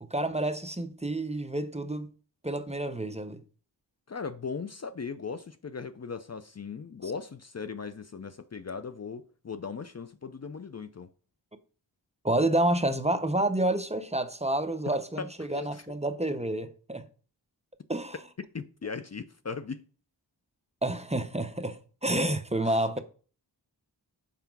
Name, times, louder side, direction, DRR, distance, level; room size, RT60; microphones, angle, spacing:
voice 1, 0.0-2.1 2.4-3.4 7.0-7.1 12.2-17.1 17.9-18.2 20.8-23.0, right 1 dB, 15° right, 0.6 m, -29 dB
voice 2, 4.1-11.1 15.2-15.8 18.5-19.8 22.6-23.0, left 5 dB, 40° left, 0.5 m, -38 dB
5.7 x 4.9 x 5.9 m
wide cardioid pair, 65°, 42 cm